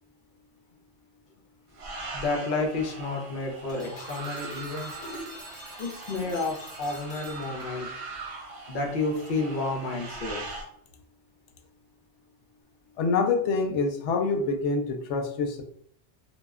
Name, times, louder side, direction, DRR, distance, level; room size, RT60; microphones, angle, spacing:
sound 1, 1.7-10.6, right 3 dB, 70° right, 0.9 m, -41 dB
voice 1, 2.1-5.1 5.8-8.0 8.7-10.4, left 3 dB, 55° left, 2 dB, 0.7 m, -31 dB
sound 2, 3.7-8.0, equal, 5° right, 0.6 m, -47 dB
voice 2, 5.0-5.3 13.0-15.6, left 4 dB, 80° left, 4 dB, 0.9 m, -26 dB
2.3 x 2.1 x 3.5 m, 0.64 s
omnidirectional pair, 1.2 m